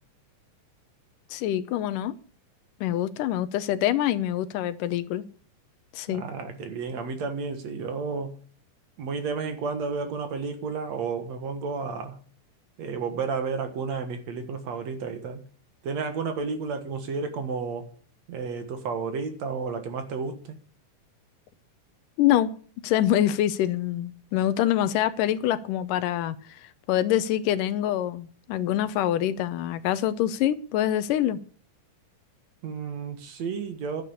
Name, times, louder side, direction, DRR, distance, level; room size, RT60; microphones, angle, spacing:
voice 1, 1.3-2.1 2.8-5.3 5.9-6.2 22.2-22.5 22.8-31.4, left 12 dB, 80° left, 13 dB, 2.4 m, -25 dB
voice 2, 6.1-8.4 9.0-12.2 12.8-15.4 15.8-17.9 18.3-20.6 32.6-34.0, right 5 dB, 60° right, 7 dB, 2.5 m, -32 dB
11.0 x 8.4 x 8.4 m, 0.44 s
omnidirectional pair, 3.7 m